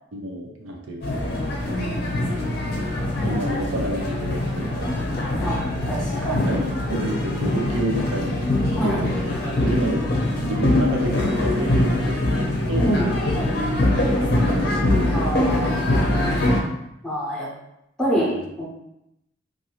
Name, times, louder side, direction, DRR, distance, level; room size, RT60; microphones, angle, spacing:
voice 1, 0.1-1.3 3.2-4.9 6.3-9.1 9.6-10.0 10.3-13.0 14.2-15.7 18.1-18.4, right 1 dB, 80° right, 1 dB, 0.6 m, -30 dB
sound 1, 1.0-16.6, left 1 dB, 50° left, 0.6 m, -23 dB
voice 2, 1.7-2.1 5.4-5.6 5.9-6.5 8.8-9.1 12.8-13.1 15.1-15.9 17.0-17.5 18.0-18.7, right 1 dB, 5° left, -8 dB, 0.8 m, -26 dB
2.6 x 2.5 x 2.9 m, 0.84 s
head